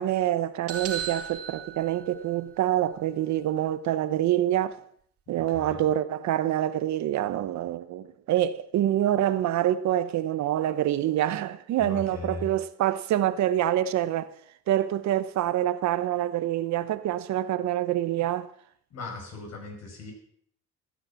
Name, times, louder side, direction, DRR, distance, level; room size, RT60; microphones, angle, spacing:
voice 1, 0.0-4.8 5.3-14.3 14.7-18.5, right 12 dB, 70° right, 1.0 m, -26 dB
sound 1, 0.7-2.6, right 7 dB, 50° right, 2.8 m, -36 dB
voice 2, 5.5-5.8 11.8-12.5 18.9-20.1, left 2 dB, 60° left, 6.2 m, -38 dB
15.0 x 9.9 x 7.1 m
cardioid pair, 120°, 29 cm